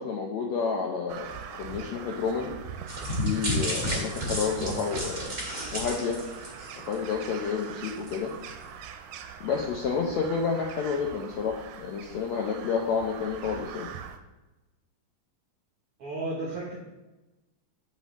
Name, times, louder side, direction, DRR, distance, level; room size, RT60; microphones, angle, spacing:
voice 1, 0.0-2.5 3.2-5.4 5.7-6.2 6.9-8.3 9.4-13.9, left 5 dB, 80° left, -1 dB, 1.6 m, -30 dB
Crow, 1.1-14.2, right 7 dB, 85° right, 2.2 m, -42 dB
sound 1, 2.9-7.1 7.5-7.6 8.1-8.2, equal, 35° right, 1.4 m, -32 dB
voice 2, 4.5-4.8 16.0-16.8, right 2 dB, 65° right, -5 dB, 1.4 m, -34 dB
8.2 x 5.5 x 3.0 m, 1.1 s
omnidirectional pair, 3.9 m